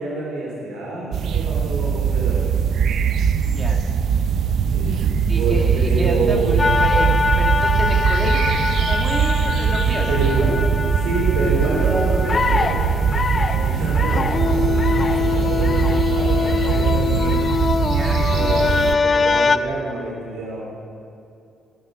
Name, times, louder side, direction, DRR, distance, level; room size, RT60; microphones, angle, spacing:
voice 1, 0.0-2.6 4.7-6.8 10.1-17.6 18.3-20.6, right 2 dB, 90° right, -3 dB, 3.1 m, -27 dB
Bold Mountain in Sopot, 1.1-19.0, right 7 dB, 70° right, 0.6 m, -21 dB
voice 2, 3.5-3.8 5.3-10.2 17.9-18.2, right 1 dB, 30° right, 2 dB, 1.8 m, -29 dB
sound 1, 6.6-19.6, left 5 dB, 35° left, 0.5 m, -23 dB
17.5 x 8.0 x 4.9 m, 2.6 s
cardioid pair, 90°, 0 cm